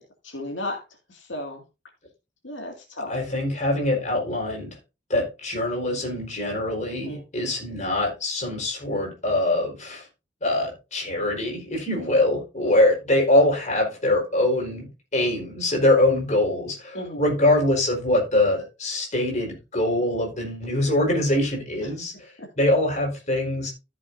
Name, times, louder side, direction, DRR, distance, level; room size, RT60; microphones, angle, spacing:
voice 1, 0.2-0.8 1.1-1.6 2.4-3.1 6.9-7.2 16.9-17.2 22.4-22.5, left 1 dB, 85° left, 2 dB, 2.2 m, -34 dB
voice 2, 3.1-4.7 5.1-10.0 10.4-23.7, left 1 dB, 40° left, 0 dB, 4.3 m, -23 dB
14.5 x 6.8 x 2.6 m, 0.27 s
head